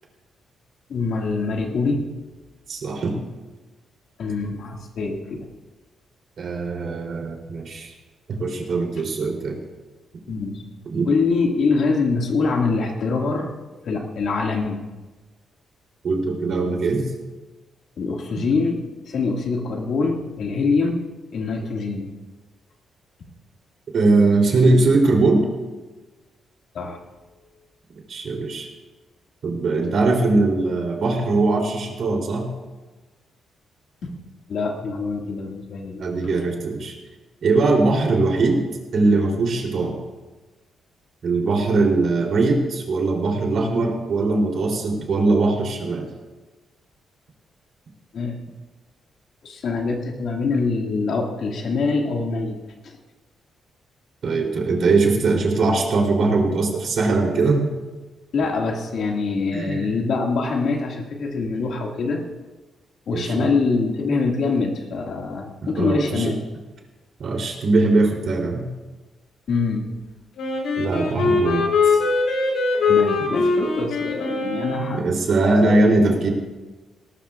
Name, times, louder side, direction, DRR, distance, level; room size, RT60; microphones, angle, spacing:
voice 1, 0.9-2.1 4.2-5.5 10.3-10.6 11.1-13.5 13.8-14.9 18.0-18.8 19.1-21.0 21.3-22.1 26.7-27.0 34.0-34.1 34.5-36.0 48.1-48.4 49.4-52.6 52.8-53.0 58.3-62.2 63.1-66.4 69.5-69.9 72.9-75.1 75.7-75.8 76.1-76.2, left 4 dB, 55° left, 1 dB, 2.1 m, -24 dB
voice 2, 2.7-3.2 6.4-7.9 8.3-9.6 10.8-11.1 16.0-17.1 18.3-18.5 23.9-25.5 28.1-28.7 29.4-32.5 36.0-36.9 37.4-38.6 38.9-40.0 41.2-46.1 54.2-57.7 59.5-59.9 63.1-63.5 65.6-66.3 67.2-68.6 70.7-72.0 75.0-76.3, right 3 dB, 50° right, 1 dB, 3.4 m, -21 dB
Wind instrument woodwind instrument, 70.4-75.1, left 4 dB, 80° left, 3.9 m, -22 dB
19.5 x 19.5 x 2.5 m, 1.2 s
cardioid pair, 170°, 0 cm